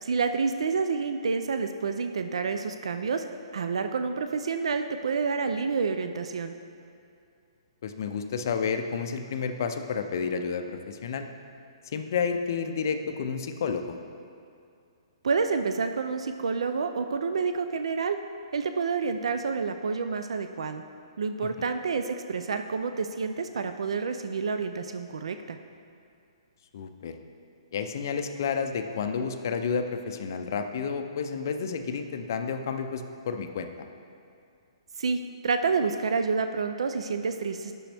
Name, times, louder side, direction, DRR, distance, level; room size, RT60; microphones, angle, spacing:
voice 1, 0.0-3.2 3.5-6.5 15.2-18.2 18.5-20.8 21.2-25.6 35.0-37.7, right 5 dB, 85° right, 8 dB, 0.4 m, -28 dB
voice 2, 7.8-11.3 11.9-14.0 26.7-27.1 27.7-33.7, left 6 dB, 40° left, 6 dB, 0.4 m, -30 dB
8.8 x 6.1 x 3.4 m, 2.5 s
hypercardioid pair, 180°, 3 cm